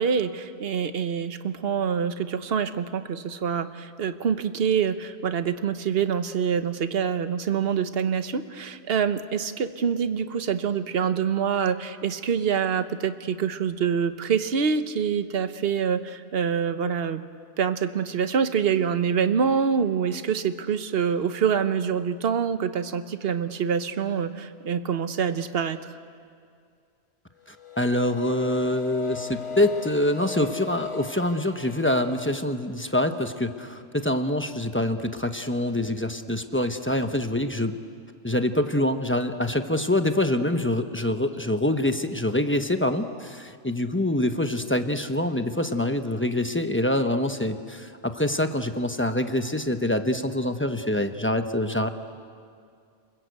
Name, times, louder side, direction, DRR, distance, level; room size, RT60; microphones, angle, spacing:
voice 1, 0.0-17.2 17.6-25.8, right 7 dB, 60° right, 11 dB, 1.1 m, -26 dB
voice 2, 27.5-37.8 38.2-51.9, left 1 dB, 10° left, 7 dB, 1.0 m, -25 dB
sound 1, 27.6-32.3, left 5 dB, 30° left, 0.9 m, -38 dB
29.5 x 20.5 x 8.1 m, 2.3 s
omnidirectional pair, 1.2 m